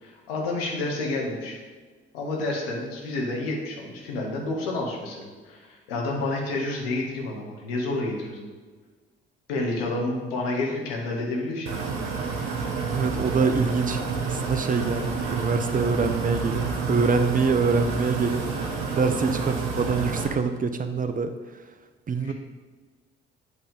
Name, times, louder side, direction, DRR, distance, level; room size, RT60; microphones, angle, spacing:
voice 1, 0.0-1.6 2.1-8.5 9.5-11.7 22.2-22.3, left 2 dB, 75° left, -1 dB, 1.2 m, -29 dB
sound 1, 11.7-20.3, right 4 dB, 65° right, 1.2 m, -29 dB
voice 2, 12.9-18.4 18.9-21.3 22.1-22.3, right 4 dB, 30° right, 9 dB, 0.6 m, -25 dB
8.1 x 3.4 x 5.2 m, 1.4 s
figure-of-eight pair, 45°, 29 cm